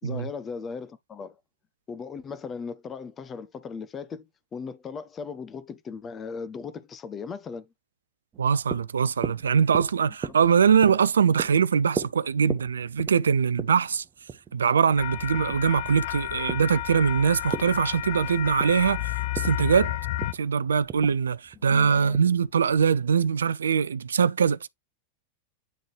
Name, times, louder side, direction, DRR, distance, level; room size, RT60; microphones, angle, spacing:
voice 1, 0.0-1.3 1.9-4.3 4.5-7.7 10.1-10.3 21.6-22.2, left 5 dB, 25° left, 1.1 m, -37 dB
sound 1, 8.3-22.9, right 7 dB, 25° right, 1.1 m, -38 dB
voice 2, 8.4-14.0 14.5-19.1 19.4-20.0 20.3-24.7, right 6 dB, 70° right, 0.4 m, -22 dB
sound 2, 15.0-20.3, left 14 dB, 55° left, 0.6 m, -31 dB
9.3 x 3.8 x 3.3 m
figure-of-eight pair, 90°, 0 cm